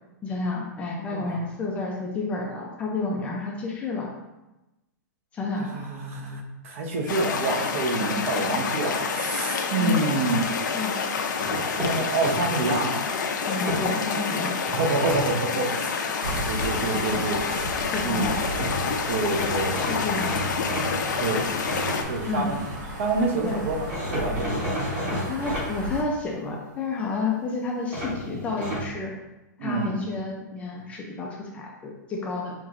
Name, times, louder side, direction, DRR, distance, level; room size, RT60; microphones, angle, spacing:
voice 1, 0.2-4.1 5.3-5.7 9.8-10.0 10.7-11.0 13.5-14.6 17.8-18.4 19.8-20.3 22.3-22.5 23.5-23.6 25.1-29.1 29.6-32.5, left 3 dB, 10° left, -1 dB, 0.4 m, -30 dB
voice 2, 1.1-1.4 5.6-10.5 11.5-13.0 14.7-16.0 16.5-17.7 18.0-19.8 21.1-21.4 22.0-22.6 23.0-24.8 29.6-30.1, right 3 dB, 45° right, 2 dB, 0.7 m, -28 dB
sound 1, 7.1-22.0, left 5 dB, 80° left, 0.6 m, -28 dB
sound 2, 11.4-12.8 13.4-14.2 14.6-15.2 18.3-18.4 18.6-18.7 19.3-22.8 23.9-25.7 27.9-28.9, equal, 20° right, 1.0 m, -32 dB
sound 3, 16.2-26.0, right 1 dB, 80° right, 1.2 m, -36 dB
5.5 x 3.0 x 2.5 m, 1.0 s
hypercardioid pair, 160°, 10 cm